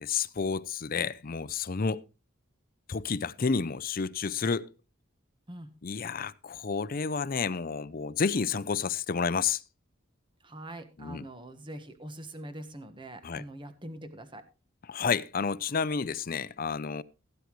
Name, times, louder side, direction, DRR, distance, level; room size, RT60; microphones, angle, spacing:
voice 1, 0.0-2.0 2.9-4.7 5.8-9.6 11.0-11.2 13.2-13.4 14.9-17.0, left 5 dB, 45° left, 0.5 m, -30 dB
voice 2, 10.4-14.4, right 1 dB, 25° right, 1.4 m, -43 dB
16.5 x 9.4 x 3.1 m
head